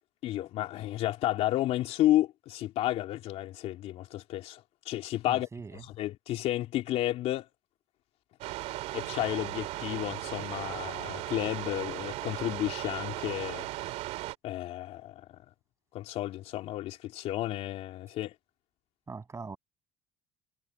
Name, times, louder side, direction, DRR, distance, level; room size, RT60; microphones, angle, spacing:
voice 1, 0.2-5.5 6.0-7.5 8.9-13.7 14.4-15.4 15.9-18.3, left 14 dB, 65° left, 3.3 m, -32 dB
voice 2, 5.3-5.8 19.1-19.6, right 4 dB, 25° right, 7.8 m, -41 dB
sound 1, 8.4-14.4, right 17 dB, 75° right, 2.6 m, -37 dB
supercardioid pair, 90°, 11 cm